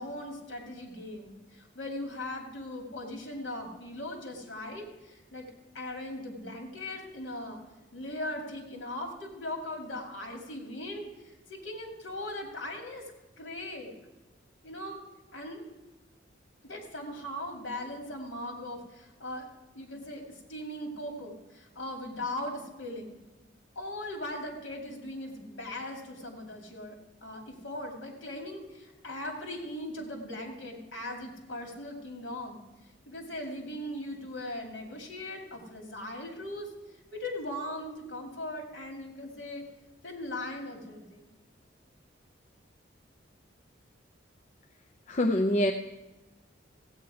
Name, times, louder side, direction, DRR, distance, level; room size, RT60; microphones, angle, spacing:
voice 1, 0.0-5.4 5.7-7.6 7.9-13.0 13.4-13.9 14.6-15.0 15.3-15.6 16.6-19.5 19.7-23.2 23.8-32.6 33.1-36.7 37.1-39.6 40.0-41.3, left 1 dB, 70° left, 1 dB, 2.4 m, -39 dB
voice 2, 45.1-45.7, left 1 dB, 40° left, 3 dB, 0.5 m, -24 dB
15.5 x 8.6 x 4.8 m, 1.1 s
head